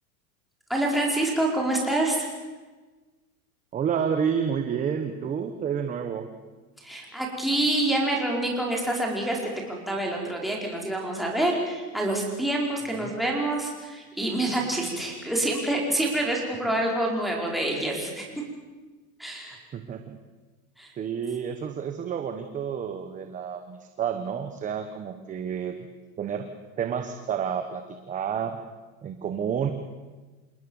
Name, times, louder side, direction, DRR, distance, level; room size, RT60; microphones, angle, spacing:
voice 1, 0.7-2.3 6.8-18.3 19.2-19.6 20.8-20.9, right 1 dB, ahead, -2 dB, 4.8 m, -27 dB
voice 2, 3.7-6.3 12.9-13.1 19.7-20.2 21.0-25.8 26.2-26.5 26.8-28.6 29.0-29.7, right 7 dB, 15° right, 7 dB, 1.1 m, -30 dB
28.0 x 19.5 x 7.2 m, 1.3 s
supercardioid pair, 155°, 45 cm